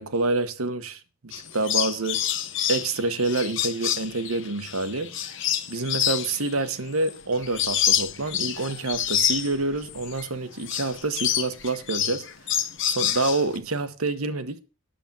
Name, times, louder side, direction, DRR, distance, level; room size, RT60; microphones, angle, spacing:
voice 1, 0.0-2.2 2.7-5.4 5.7-12.3 12.9-14.6, right 3 dB, 90° right, 1.2 m, -27 dB
sound 1, 1.3-10.3 10.6-13.6, left 10 dB, 60° left, 1.1 m, -28 dB
10.0 x 7.3 x 5.4 m
head